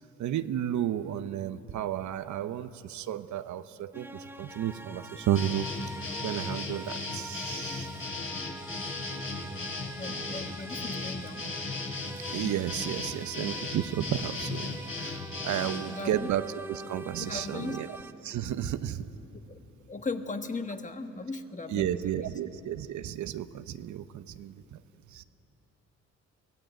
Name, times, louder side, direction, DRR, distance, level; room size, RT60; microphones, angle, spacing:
voice 1, 0.2-5.7 6.2-8.0 12.3-18.0 18.2-19.1 21.7-24.8 25.1-25.2, right 11 dB, 70° right, 11 dB, 0.9 m, -33 dB
sound 1, 3.9-18.1, right 1 dB, 5° right, 0.8 m, -44 dB
sound 2, 5.4-15.9, left 3 dB, 45° left, 3.9 m, -36 dB
voice 2, 9.4-11.5 15.5-16.3 17.2-17.8 19.5-19.6 19.9-22.3, left 3 dB, 25° left, 7 dB, 1.4 m, -38 dB
23.0 x 17.0 x 9.0 m, 3.0 s
cardioid pair, 90°, 30 cm